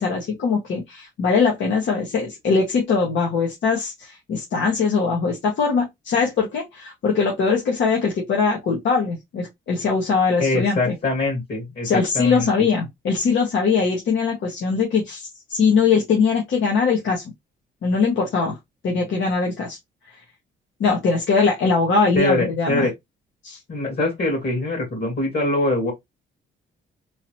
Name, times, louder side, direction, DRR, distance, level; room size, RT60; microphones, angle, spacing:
voice 1, 0.0-10.9 11.8-17.2 17.8-18.6 18.8-19.8 20.8-22.9 23.4-23.6, left 5 dB, 70° left, 1.2 m, -21 dB
voice 2, 10.4-12.5 22.1-22.9 23.7-25.9, left 2 dB, 55° left, 2.3 m, -23 dB
3.8 x 2.8 x 3.0 m
cardioid pair, 90°, 20 cm